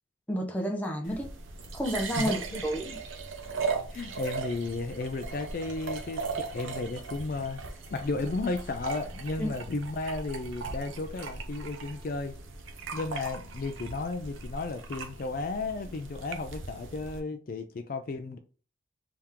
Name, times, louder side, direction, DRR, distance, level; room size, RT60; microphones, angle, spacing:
voice 1, 0.3-1.3 1.7-3.0 9.4-9.5, equal, 10° left, 0.6 m, -30 dB
sound 1, 1.0-17.2, right 4 dB, 85° right, 0.6 m, -38 dB
voice 2, 2.2-2.6 3.9-7.6 7.9-12.3 12.9-18.4, left 3 dB, 45° left, 0.4 m, -34 dB
3.5 x 2.9 x 3.6 m
head